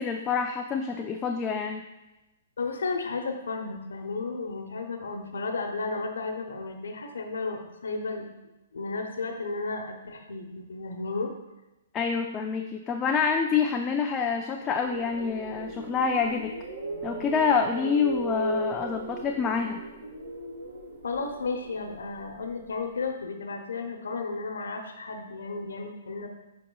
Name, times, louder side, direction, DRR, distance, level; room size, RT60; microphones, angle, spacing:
voice 1, 0.0-1.8 11.9-16.5 17.0-19.8, left 6 dB, 20° left, 3 dB, 0.4 m, -27 dB
voice 2, 2.6-8.3 8.7-11.3 21.0-26.3, left 3 dB, 80° left, 4 dB, 0.9 m, -33 dB
sound 1, 14.6-22.7, right 1 dB, 75° right, 1.5 m, -37 dB
8.4 x 5.1 x 2.3 m, 1.0 s
hypercardioid pair, 130°, 0 cm